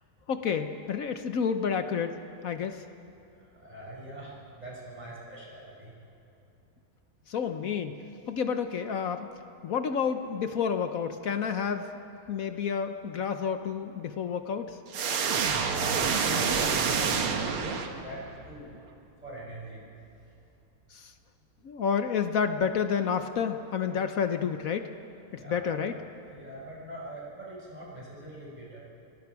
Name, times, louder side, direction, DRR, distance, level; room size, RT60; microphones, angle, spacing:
voice 1, 0.3-2.2 2.4-2.8 7.3-8.0 8.3-9.3 9.6-11.9 12.3-14.8 20.9-21.1 21.6-24.9 25.3-25.9, left 6 dB, 60° left, 8 dB, 0.9 m, -30 dB
voice 2, 3.5-5.9 15.8-18.6 19.2-19.8 25.3-25.6 26.3-28.9, right 1 dB, 20° right, -5 dB, 5.8 m, -43 dB
sound 1, 14.9-18.3, right 6 dB, 85° right, 2.2 m, -27 dB
29.5 x 20.0 x 4.7 m, 2.7 s
omnidirectional pair, 2.3 m